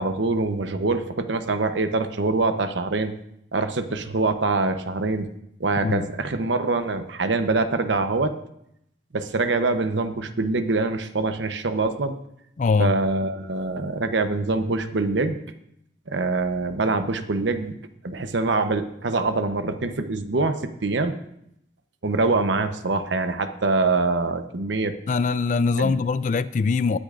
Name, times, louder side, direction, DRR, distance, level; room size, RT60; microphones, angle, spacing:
voice 1, 0.0-3.1 3.5-5.3 5.6-8.4 9.1-12.2 12.8-15.4 16.1-17.8 18.0-21.2 22.0-25.0 25.8-25.9, right 3 dB, 75° right, 0.9 m, -24 dB
voice 2, 12.6-13.0 25.1-27.0, left 4 dB, 40° left, 0.3 m, -22 dB
18.5 x 9.9 x 2.5 m
head